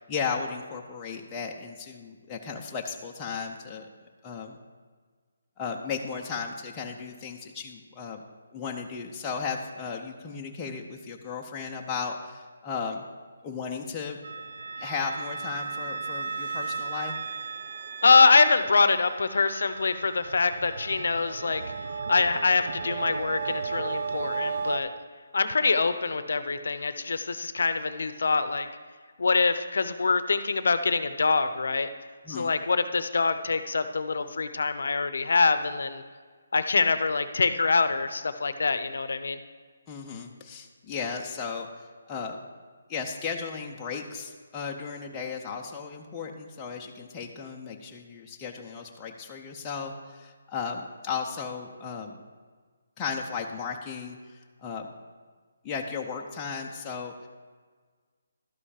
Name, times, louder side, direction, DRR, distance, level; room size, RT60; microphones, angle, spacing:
voice 1, 0.1-3.9 4.2-4.6 5.6-8.2 8.5-13.0 13.4-14.2 14.8-17.2 32.2-32.6 39.9-42.4 42.9-52.2 53.0-54.9 55.6-57.3, left 5 dB, 10° left, -1 dB, 0.5 m, -35 dB
sound 1, 14.2-24.8, right 5 dB, 45° right, 0.4 m, -35 dB
voice 2, 18.0-21.6 22.1-24.9 25.3-28.7 29.2-31.9 32.3-36.0 36.5-39.4, left 4 dB, 65° left, 11 dB, 0.6 m, -24 dB
12.0 x 5.5 x 4.9 m, 1.5 s
hypercardioid pair, 175°, 0 cm